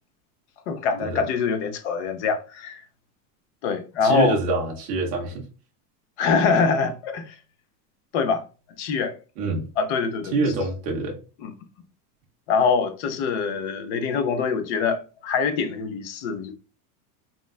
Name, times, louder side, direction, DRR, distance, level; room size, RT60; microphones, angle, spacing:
voice 1, 0.7-2.8 3.6-4.4 6.2-7.3 8.1-8.4 8.8-9.1 9.8-10.4 11.4-11.5 12.5-16.5, left 5 dB, 50° left, 0.5 m, -24 dB
voice 2, 4.0-5.4 9.4-9.7 10.3-11.2, right 3 dB, 20° right, 0.4 m, -25 dB
3.7 x 2.1 x 2.3 m
supercardioid pair, 160°, 47 cm